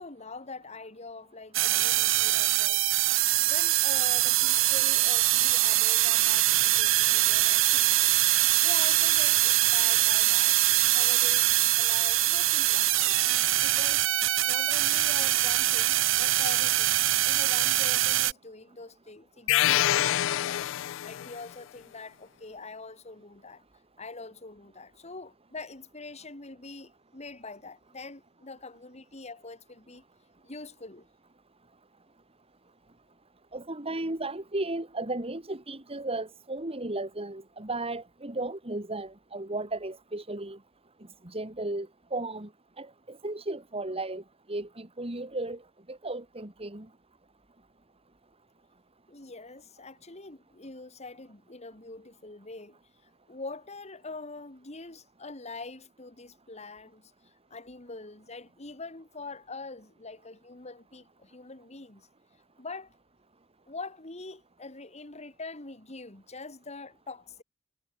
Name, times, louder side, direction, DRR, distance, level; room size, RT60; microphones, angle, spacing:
voice 1, 0.0-2.8 3.1-8.1 8.6-10.6 10.9-13.1 13.5-14.1 14.4-17.0 17.2-23.6 24.0-30.0 30.4-31.0 49.1-62.1 62.6-62.9 63.7-67.4, left 3 dB, 35° left, 2.4 m, -44 dB
sound 1, 1.5-18.3, right 15 dB, 85° right, 1.7 m, -23 dB
sound 2, 19.5-21.4, left 13 dB, 70° left, 0.3 m, -26 dB
voice 2, 33.5-40.6 41.2-42.5 42.8-44.2 44.5-45.6 45.9-46.9, right 2 dB, 30° right, 2.5 m, -35 dB
head